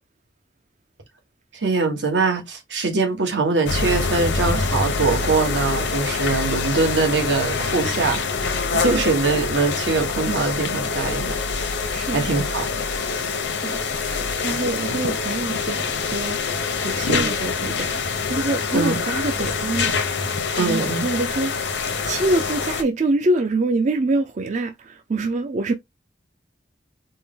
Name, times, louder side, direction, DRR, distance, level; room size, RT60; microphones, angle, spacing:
voice 1, 1.5-8.2 8.7-11.4 12.1-12.7 17.1-17.3 18.7-19.0 20.6-21.1, right 3 dB, 80° right, 1.2 m, -22 dB
sound 1, 3.7-22.8, left 4 dB, 80° left, 0.7 m, -25 dB
voice 2, 11.9-12.3 13.5-25.7, right 2 dB, 40° right, 0.4 m, -26 dB
4.4 x 2.1 x 3.5 m
head